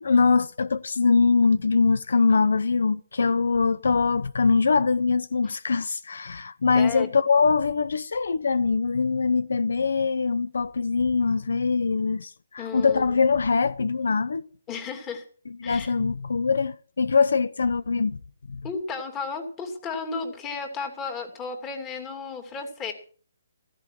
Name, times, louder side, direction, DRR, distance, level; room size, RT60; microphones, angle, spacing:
voice 1, 0.0-14.5 15.6-18.2 18.5-18.7, left 4 dB, 75° left, 0.7 m, -23 dB
voice 2, 6.7-7.1 12.6-13.2 14.7-15.2 15.6-15.9 18.6-22.9, left 4 dB, 15° left, 2.8 m, -34 dB
15.0 x 14.5 x 4.7 m
hypercardioid pair, 160°, 0 cm